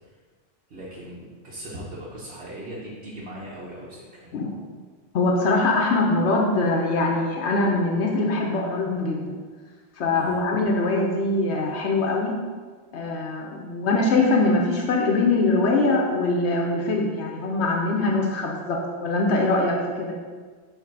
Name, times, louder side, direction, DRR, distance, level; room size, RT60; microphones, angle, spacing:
voice 1, 0.7-4.3 10.1-10.4, right 1 dB, 75° right, -7 dB, 1.3 m, -39 dB
voice 2, 5.1-9.3 10.0-12.4 12.9-20.1, left 2 dB, 80° left, 0 dB, 1.0 m, -23 dB
7.4 x 3.1 x 4.6 m, 1.5 s
omnidirectional pair, 1.1 m